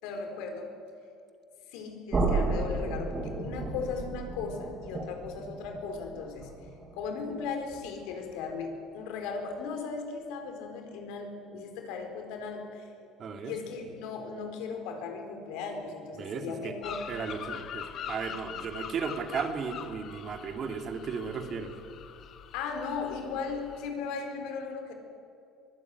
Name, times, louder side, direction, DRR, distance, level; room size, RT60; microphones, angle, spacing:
voice 1, 0.0-0.7 1.7-6.5 6.9-12.9 13.4-17.0 22.5-24.9, left 5 dB, 80° left, 4 dB, 4.4 m, -37 dB
sound 1, 2.1-8.0, right 3 dB, 25° right, 5.4 m, -33 dB
voice 2, 13.2-13.5 16.2-16.7 17.1-21.7, right 5 dB, 40° right, 6 dB, 2.6 m, -35 dB
sound 2, 16.8-23.9, left 8 dB, 50° left, 1.6 m, -43 dB
23.5 x 16.5 x 9.7 m, 2.5 s
cardioid pair, 120°, 0 cm